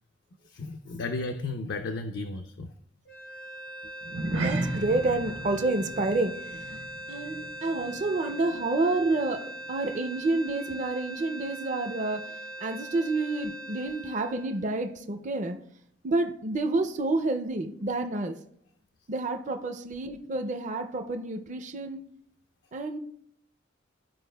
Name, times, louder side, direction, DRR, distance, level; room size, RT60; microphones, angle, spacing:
voice 1, 0.5-2.7, left 3 dB, 60° left, 0.4 m, -34 dB
sound 1, 3.0-15.3, right 1 dB, 90° left, 2.9 m, -41 dB
sound 2, 4.0-8.6 8.9-9.2 9.7-9.8, right 2 dB, 75° right, 0.9 m, -35 dB
voice 2, 4.3-15.6 16.0-18.4 19.1-22.1 22.7-23.0, right 2 dB, 40° right, 0.5 m, -29 dB
13.5 x 4.8 x 2.2 m
head